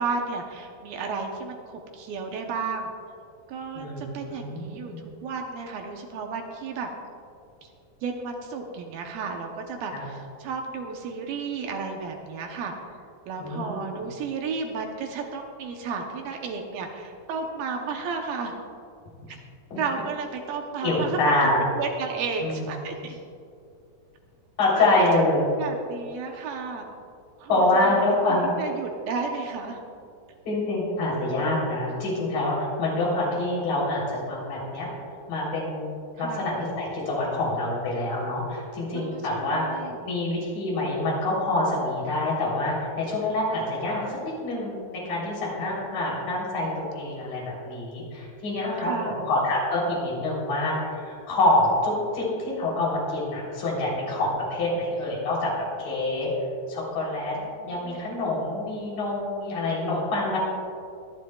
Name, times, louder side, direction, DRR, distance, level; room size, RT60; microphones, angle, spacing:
voice 1, 0.0-2.9 3.5-6.9 7.6-7.7 8.0-12.7 13.3-18.6 19.3-19.4 19.8-21.2 21.8-23.2 24.7-25.1 25.6-26.8 27.4-27.6 28.0-29.8 36.2-36.5 38.9-40.1 45.5-45.8 48.8-49.3 57.3-58.1, right 5 dB, 75° right, 2 dB, 2.5 m, -33 dB
voice 2, 3.7-4.6 4.9-5.0 9.9-10.1 13.4-13.8 19.7-19.8 20.8-21.6 22.4-22.7 24.6-25.5 27.5-28.5 30.4-34.9 35.3-39.6 40.0-55.5 55.8-56.3 56.7-57.4 57.6-60.4, left 2 dB, 60° left, -5 dB, 5.1 m, -26 dB
24.0 x 11.0 x 2.3 m, 2.4 s
omnidirectional pair, 4.5 m